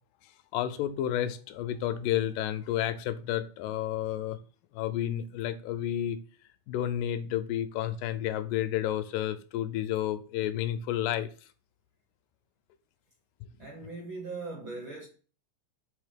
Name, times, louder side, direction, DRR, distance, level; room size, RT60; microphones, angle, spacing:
voice 1, 0.5-4.4 4.7-6.2 6.7-11.3, left 11 dB, 85° left, 2.2 m, -31 dB
voice 2, 13.6-15.1, right 3 dB, 65° right, 1.2 m, -39 dB
5.3 x 3.5 x 5.1 m
omnidirectional pair, 3.7 m